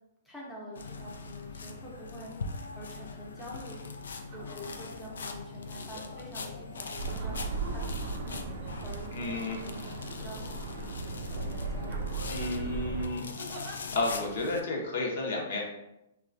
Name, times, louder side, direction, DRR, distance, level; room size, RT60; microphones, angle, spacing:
voice 1, 0.2-8.5 8.8-10.9 11.3-12.2, equal, ahead, -6 dB, 0.7 m, -46 dB
sound 1, 0.8-14.6, left 4 dB, 85° left, 0.3 m, -42 dB
sound 2, 3.5-3.7 4.2-4.9 5.7-6.2 7.2-9.3 10.0-10.8 11.2-11.4 11.8-12.4 13.4-13.8 14.5-14.7, right 1 dB, 30° right, 0.7 m, -49 dB
sound 3, 7.0-13.1, right 4 dB, 65° right, 0.4 m, -37 dB
voice 2, 9.1-9.6 12.3-13.3 13.9-15.6, left 2 dB, 65° left, -1 dB, 0.8 m, -31 dB
2.9 x 2.3 x 2.5 m, 0.87 s
hypercardioid pair, 150°, 0 cm